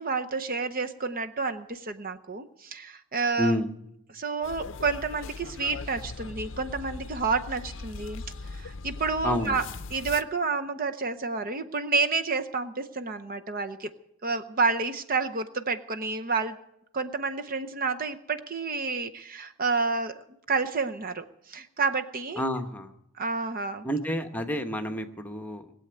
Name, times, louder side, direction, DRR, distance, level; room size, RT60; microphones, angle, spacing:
voice 1, 0.0-3.6 4.1-8.2 8.5-9.6 9.9-13.9 14.2-16.6 16.9-20.2 20.5-22.4 23.2-23.9, right 4 dB, 40° right, 8 dB, 0.7 m, -29 dB
voice 2, 3.4-3.7 9.2-9.7 22.4-22.9 23.8-25.7, equal, 10° left, 5 dB, 1.0 m, -29 dB
sound 1, 4.4-10.2, left 3 dB, 60° left, 0.6 m, -39 dB
20.5 x 7.8 x 9.2 m, 0.80 s
head